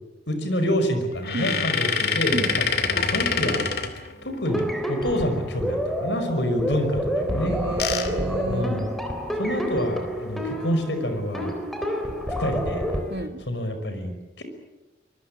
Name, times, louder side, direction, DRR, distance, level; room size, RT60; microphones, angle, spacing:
voice 1, 0.3-3.6 4.2-7.6 8.5-8.9 9.3-11.5 12.4-12.9 13.5-14.4, equal, 75° left, 5.5 m, -27 dB
sound 1, 1.1-4.6 7.3-9.2 9.8-9.9 10.1-10.3 11.8-12.1 12.8-13.3, left 5 dB, 60° left, 2.6 m, -27 dB
voice 2, 1.3-1.7 2.3-2.7 3.5-3.7 7.4-8.8 13.1-13.5, right 2 dB, 65° right, 2.0 m, -32 dB
sound 2, 4.5-13.0, equal, ahead, 3.7 m, -29 dB
24.5 x 22.5 x 8.8 m
head